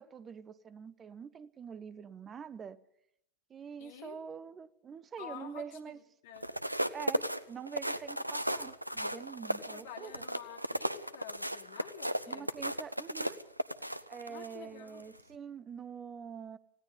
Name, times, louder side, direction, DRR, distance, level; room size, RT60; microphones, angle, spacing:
voice 1, 0.0-2.8 3.5-6.0 6.9-10.2 12.3-13.4 14.1-16.6, right 7 dB, 20° right, 0.8 m, -45 dB
voice 2, 3.8-4.2 5.2-6.5 9.7-12.5 14.3-15.0, left 8 dB, 55° left, 2.8 m, -49 dB
sound 1, 6.4-14.5 15.0-15.2, right 1 dB, 90° right, 0.7 m, -35 dB
19.0 x 16.5 x 8.4 m
figure-of-eight pair, 90°, 0 cm